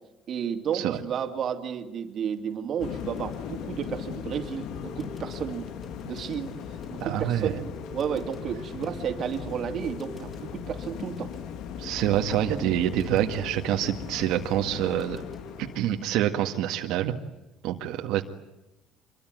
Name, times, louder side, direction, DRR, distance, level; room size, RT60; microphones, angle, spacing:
voice 1, 0.3-5.7 6.0-11.3, right 8 dB, 40° right, 5 dB, 2.7 m, -32 dB
sound 1, 2.2-15.8, left 1 dB, 20° left, 7.7 m, -47 dB
sound 2, 2.8-16.2, left 8 dB, 60° left, 1.5 m, -38 dB
voice 2, 7.0-7.6 11.8-15.2 15.6-17.2 17.6-18.2, right 12 dB, 70° right, 4 dB, 1.9 m, -26 dB
26.5 x 23.0 x 9.3 m, 0.94 s
cardioid pair, 165°, 0 cm